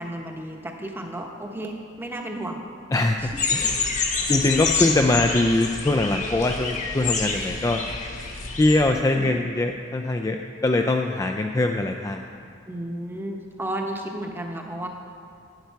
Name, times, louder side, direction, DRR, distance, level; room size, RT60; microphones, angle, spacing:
voice 1, 0.0-2.6 3.2-3.6 9.1-9.3 12.7-14.9, right 1 dB, 10° right, 2 dB, 0.9 m, -33 dB
voice 2, 2.9-3.8 4.3-7.8 8.6-12.3, left 2 dB, 15° left, 4 dB, 0.3 m, -22 dB
sound 1, 3.2-8.9, left 1 dB, 90° left, 0.8 m, -39 dB
sound 2, 3.4-8.8, left 5 dB, 40° left, 1.2 m, -27 dB
11.5 x 9.3 x 4.6 m, 2.4 s
head